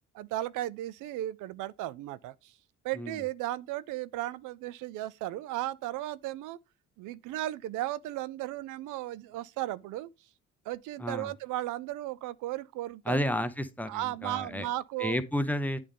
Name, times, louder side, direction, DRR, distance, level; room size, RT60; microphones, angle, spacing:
voice 1, 0.1-2.5 2.8-6.6 7.0-10.1 10.7-13.2 13.9-15.2, right 15 dB, 90° right, 0.5 m, -35 dB
voice 2, 11.0-11.3 13.1-14.7 15.0-15.8, equal, 5° left, 0.7 m, -31 dB
8.5 x 3.3 x 3.7 m
cardioid pair, 90°, 30 cm